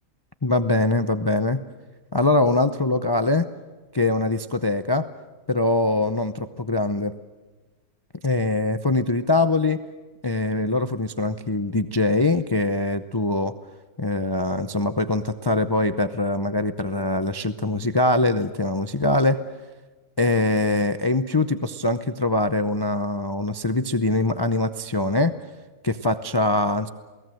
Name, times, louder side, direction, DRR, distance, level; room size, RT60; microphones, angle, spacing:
voice 1, 0.4-1.6 2.1-3.5 3.9-5.1 5.5-7.1 8.2-9.8 10.2-13.5 14.0-19.4 20.2-25.3 25.8-26.9, left 2 dB, 35° left, 10 dB, 0.4 m, -23 dB
28.0 x 18.5 x 7.8 m, 1.3 s
omnidirectional pair, 1.6 m